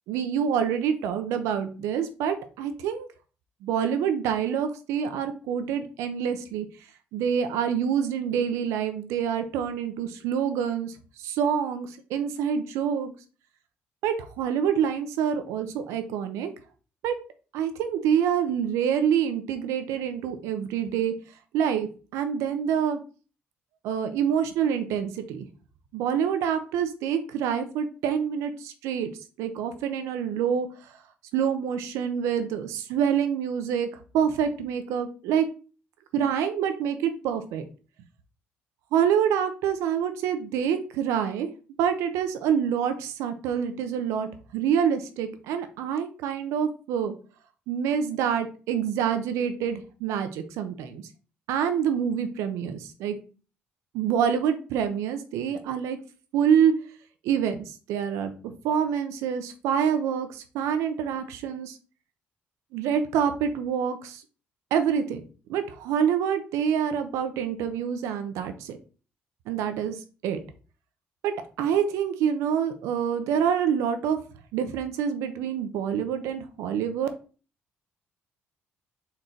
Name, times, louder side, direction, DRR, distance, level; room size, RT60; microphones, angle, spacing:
voice 1, 0.1-3.1 3.6-6.7 7.1-13.1 14.0-16.5 17.0-17.1 17.5-21.1 21.5-23.0 23.8-25.5 25.9-29.1 29.4-30.7 31.3-33.9 34.1-35.5 36.1-37.7 38.9-41.5 41.8-47.1 47.7-51.0 51.5-53.2 53.9-56.0 56.3-56.7 57.2-58.3 58.6-61.8 62.7-64.2 64.7-65.2 65.5-68.8 69.5-70.4 71.2-71.3 71.6-74.2 74.5-77.1, right 8 dB, 85° right, 9 dB, 0.6 m, -26 dB
4.4 x 3.1 x 3.8 m, 0.37 s
supercardioid pair, 70°, 5 cm